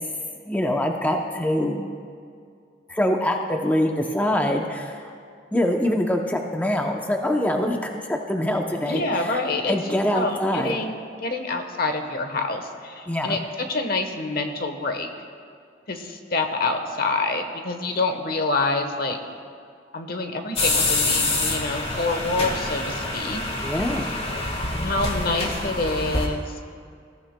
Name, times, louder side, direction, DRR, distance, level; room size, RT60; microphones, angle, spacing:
voice 1, 0.5-1.9 2.9-5.1 5.5-9.4 9.7-10.8 13.1-13.4 23.6-24.1, left 1 dB, 10° left, 2 dB, 0.6 m, -24 dB
voice 2, 8.9-15.1 15.9-19.2 19.9-23.4 24.8-26.5, left 3 dB, 55° left, 6 dB, 1.1 m, -27 dB
sound 1, 20.6-26.3, left 2 dB, 35° left, 1.5 m, -26 dB
21.5 x 14.5 x 2.2 m, 2.2 s
head